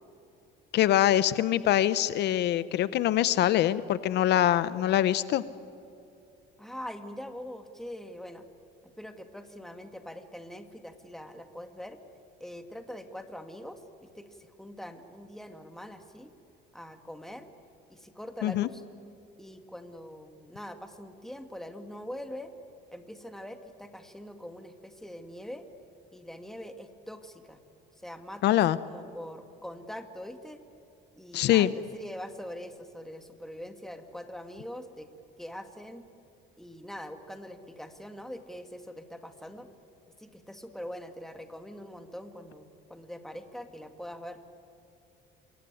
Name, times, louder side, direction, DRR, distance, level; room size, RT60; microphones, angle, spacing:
voice 1, 0.7-5.4 18.4-18.7 28.4-28.8 31.3-31.7, left 13 dB, 65° left, 15 dB, 0.7 m, -24 dB
voice 2, 6.6-8.5 9.0-12.0 12.4-16.3 16.7-17.5 17.9-18.8 19.4-22.5 22.9-25.7 26.1-27.6 28.0-30.6 31.2-35.1 35.4-36.1 36.6-39.7 40.2-44.4, equal, ahead, 7 dB, 1.9 m, -43 dB
27.5 x 22.5 x 9.4 m, 2.8 s
cardioid pair, 140°, 19 cm